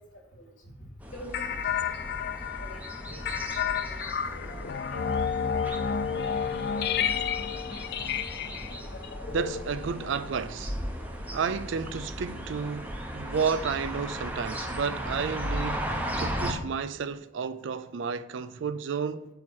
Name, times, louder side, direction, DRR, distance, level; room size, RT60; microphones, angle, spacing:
voice 1, 0.4-1.9 2.3-3.4 3.8-4.2 4.4-5.2 5.5-7.2, equal, 80° left, 2.7 m, -47 dB
sound 1, 1.0-16.5, equal, 10° right, 0.7 m, -36 dB
sound 2, 1.3-10.2, left 7 dB, 55° left, 0.3 m, -31 dB
voice 2, 9.3-10.8 11.3-19.3, right 5 dB, 65° right, 0.4 m, -32 dB
8.4 x 2.9 x 6.2 m
head